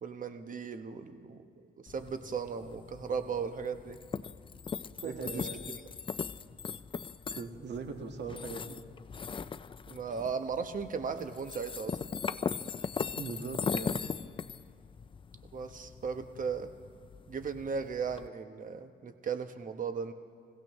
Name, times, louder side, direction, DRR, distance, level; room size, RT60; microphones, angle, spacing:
voice 1, 0.0-4.0 5.0-5.8 9.9-12.0 15.5-16.7 17.3-20.1, right 6 dB, 40° right, 8 dB, 1.1 m, -37 dB
sound 1, 1.9-18.3, left 6 dB, 25° left, 0.4 m, -40 dB
voice 2, 5.0-5.6 7.3-8.8 13.2-14.0, right 4 dB, 60° right, 5 dB, 1.7 m, -40 dB
27.0 x 16.0 x 3.1 m, 2.3 s
cardioid pair, 90°, 20 cm